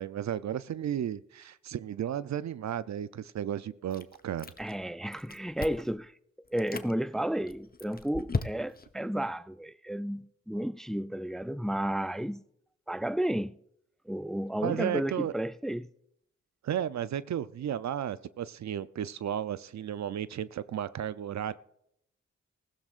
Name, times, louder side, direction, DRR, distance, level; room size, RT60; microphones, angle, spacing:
voice 1, 0.0-4.5 14.6-15.3 16.6-21.5, right 10 dB, 65° right, 0.5 m, -34 dB
Chewing mastication, 3.9-4.8 5.1-6.0 6.5-6.9 7.5-8.9, left 4 dB, 30° left, 0.9 m, -36 dB
voice 2, 4.6-6.1 6.5-12.4 12.9-13.6 14.1-15.9, right 1 dB, ahead, 0.4 m, -32 dB
19.0 x 15.5 x 2.5 m
cardioid pair, 45°, 30 cm